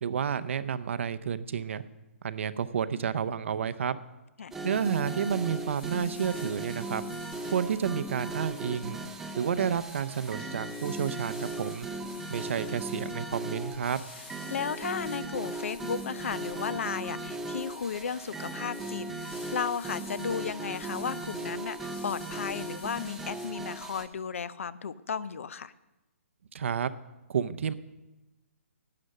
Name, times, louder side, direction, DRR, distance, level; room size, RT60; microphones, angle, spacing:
voice 1, 0.0-1.8 2.2-4.0 4.6-7.0 7.5-9.0 9.4-11.9 12.3-14.0 26.5-26.9 27.3-27.7, right 7 dB, 60° right, 13 dB, 0.6 m, -30 dB
sound 1, 4.5-24.1, right 2 dB, 5° right, 0.6 m, -38 dB
sound 2, 4.7-23.5, left 6 dB, 45° left, 3.2 m, -52 dB
voice 2, 14.5-25.7, left 6 dB, 70° left, 18 dB, 0.6 m, -34 dB
11.5 x 8.5 x 6.6 m, 1.0 s
hypercardioid pair, 155°, 7 cm